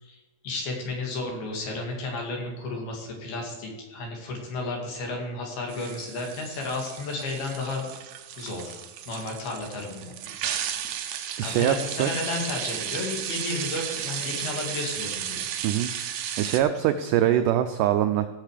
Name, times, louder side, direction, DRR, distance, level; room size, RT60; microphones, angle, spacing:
voice 1, 0.0-7.9 8.4-8.8 9.1-10.1 11.4-15.4, left 2 dB, 80° left, 0 dB, 4.2 m, -33 dB
sound 1, 5.7-16.6, right 10 dB, 70° right, 2.0 m, -34 dB
voice 2, 11.4-12.1 15.6-15.9 16.4-18.3, right 11 dB, 85° right, 9 dB, 1.8 m, -23 dB
17.0 x 6.6 x 5.0 m, 1.2 s
omnidirectional pair, 4.3 m